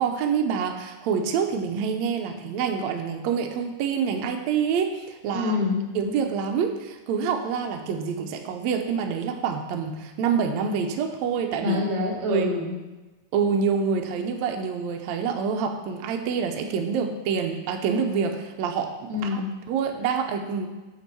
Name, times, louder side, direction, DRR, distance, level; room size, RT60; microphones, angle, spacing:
voice 1, 0.0-5.6 5.9-11.8 12.3-12.5 13.3-19.4 19.7-20.7, right 6 dB, 80° right, 4 dB, 1.6 m, -27 dB
voice 2, 5.3-5.9 11.6-12.8 19.1-19.6, left 2 dB, 60° right, -3 dB, 3.2 m, -25 dB
8.1 x 3.7 x 6.7 m, 1.2 s
omnidirectional pair, 3.8 m